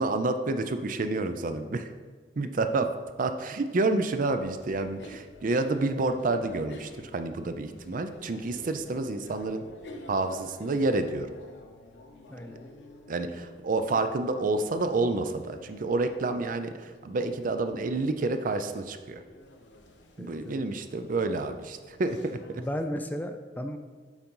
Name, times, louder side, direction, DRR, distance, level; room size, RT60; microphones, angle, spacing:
voice 1, 0.0-1.9 2.4-2.9 3.2-9.6 10.1-11.3 13.1-19.2 20.2-22.6, right 3 dB, 50° right, 8 dB, 0.5 m, -29 dB
sound 1, 4.2-22.9, left 1 dB, 85° left, 0.8 m, -50 dB
voice 2, 12.3-12.7 20.2-20.6 22.6-23.8, equal, 10° left, 7 dB, 0.3 m, -35 dB
7.1 x 3.9 x 5.4 m, 1.4 s
head